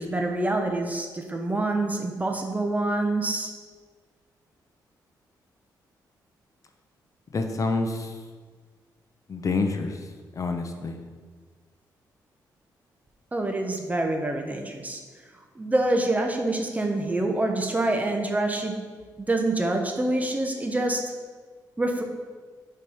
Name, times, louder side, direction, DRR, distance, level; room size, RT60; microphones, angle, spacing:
voice 1, 0.0-3.5 13.3-15.0 15.6-18.8 19.2-21.0 21.8-22.0, right 2 dB, 20° right, 3 dB, 0.9 m, -26 dB
voice 2, 7.3-8.1 9.3-10.0 10.4-11.0, left 3 dB, 45° left, 5 dB, 0.6 m, -27 dB
4.9 x 4.4 x 5.4 m, 1.5 s
cardioid pair, 75°, 8 cm